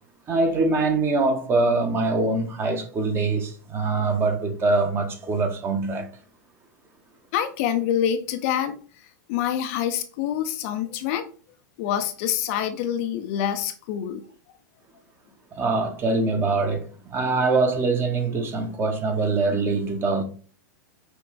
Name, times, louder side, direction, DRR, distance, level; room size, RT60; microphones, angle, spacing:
voice 1, 0.3-6.1 15.5-16.8 17.1-20.2, right 3 dB, 25° right, 1.0 m, -23 dB
voice 2, 7.3-8.8 9.3-11.3 11.8-14.2, left 10 dB, 45° left, 0.5 m, -26 dB
6.1 x 2.4 x 3.2 m
figure-of-eight pair, 100°, 10 cm